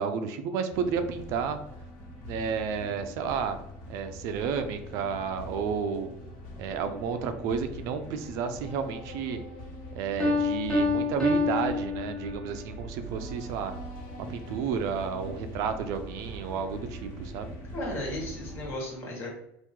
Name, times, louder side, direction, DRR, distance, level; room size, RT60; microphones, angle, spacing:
voice 1, 0.0-1.6 2.3-3.6 3.9-6.1 6.6-9.4 9.9-13.7 14.3-17.5, right 6 dB, 60° right, 8 dB, 0.4 m, -31 dB
sound 1, 0.7-18.7, equal, 65° left, 1.4 m, -43 dB
Piano, 10.2-12.7, left 3 dB, 10° left, 1.0 m, -27 dB
voice 2, 17.7-19.3, left 1 dB, 40° left, -2 dB, 1.4 m, -35 dB
2.9 x 2.5 x 3.6 m, 0.83 s
cardioid pair, 140°, 6 cm